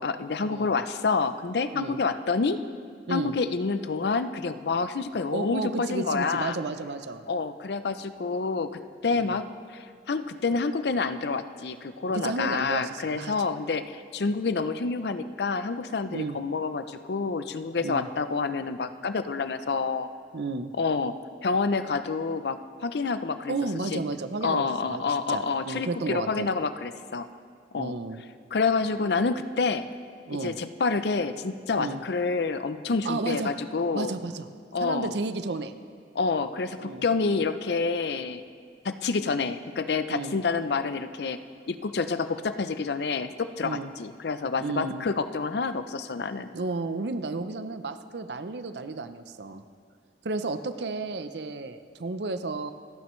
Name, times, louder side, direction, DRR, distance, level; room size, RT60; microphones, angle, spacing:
voice 1, 0.0-2.6 3.1-6.6 7.3-20.1 20.8-21.2 21.4-23.5 23.9-24.0 24.4-27.3 27.7-27.9 28.5-29.9 30.3-34.1 34.7-35.1 36.1-38.4 38.8-41.4 41.7-46.5, left 4 dB, 65° left, 11 dB, 0.5 m, -28 dB
voice 2, 5.3-7.2 9.1-9.4 12.1-13.3 16.1-16.4 17.8-18.1 20.3-20.7 23.5-26.5 27.8-28.2 30.3-30.6 31.8-32.0 33.0-33.5 33.9-34.5 34.8-35.7 36.8-37.0 40.1-40.4 43.6-43.9 44.6-45.0 46.5-49.6 50.2-52.7, right 3 dB, 70° right, 10 dB, 0.6 m, -32 dB
27.5 x 9.2 x 3.2 m, 2.2 s
head